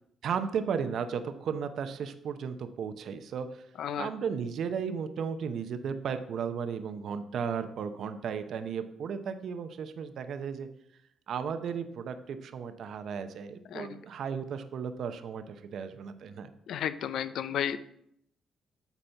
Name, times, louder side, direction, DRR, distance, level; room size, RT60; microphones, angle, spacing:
voice 1, 0.2-3.6 4.0-10.7 11.3-16.5, right 6 dB, 65° right, 9 dB, 0.7 m, -35 dB
voice 2, 3.8-4.1 13.7-13.9 16.7-17.8, left 9 dB, 75° left, 14 dB, 0.5 m, -32 dB
8.0 x 4.2 x 5.7 m, 0.73 s
cardioid pair, 80°, 0 cm